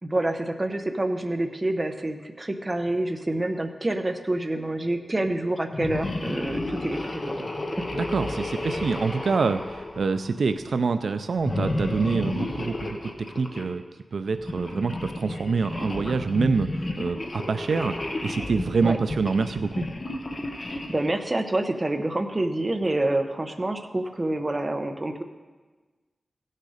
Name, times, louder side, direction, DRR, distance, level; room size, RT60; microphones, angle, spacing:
voice 1, 0.0-7.5 7.8-7.9 18.8-19.0 20.7-25.2, right 1 dB, 25° right, 6 dB, 0.8 m, -27 dB
sound 1, 5.7-10.5 11.4-13.7 14.3-21.2, left 2 dB, 35° left, 1.0 m, -32 dB
voice 2, 7.9-13.8 14.1-19.9, right 4 dB, 80° right, 10 dB, 0.4 m, -26 dB
16.0 x 6.6 x 5.0 m, 1.3 s
wide cardioid pair, 110°, 0 cm